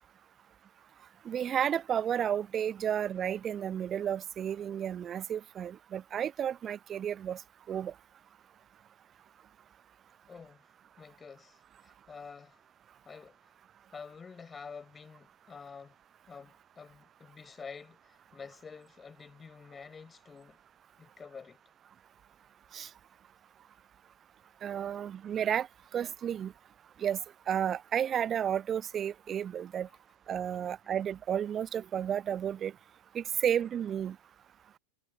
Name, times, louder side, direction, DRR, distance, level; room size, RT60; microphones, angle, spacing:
voice 1, 1.3-7.4 7.7-7.9 22.7-22.9 24.6-25.7 25.9-26.5 27.0-27.2 27.5-29.9 30.3-32.7 33.1-34.1, right 9 dB, 25° right, 0.7 m, -32 dB
voice 2, 10.3-10.7 11.0-12.6 13.0-13.5 13.9-16.0 16.3-20.6 21.0-21.6 29.9-30.0, left 5 dB, 15° left, 6.2 m, -49 dB
figure-of-eight pair, 90°, 0 cm